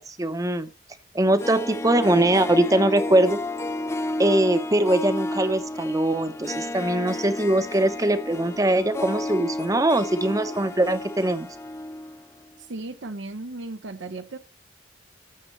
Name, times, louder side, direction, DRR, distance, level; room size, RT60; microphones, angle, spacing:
voice 1, 0.1-0.7 1.1-3.4 4.2-11.5, right 1 dB, 20° right, 0.8 m, -22 dB
Harp, 1.2-12.2 12.5-12.6, left 1 dB, 15° left, 0.4 m, -31 dB
voice 2, 12.6-14.4, right 2 dB, 75° right, 0.8 m, -36 dB
14.0 x 6.5 x 3.1 m
head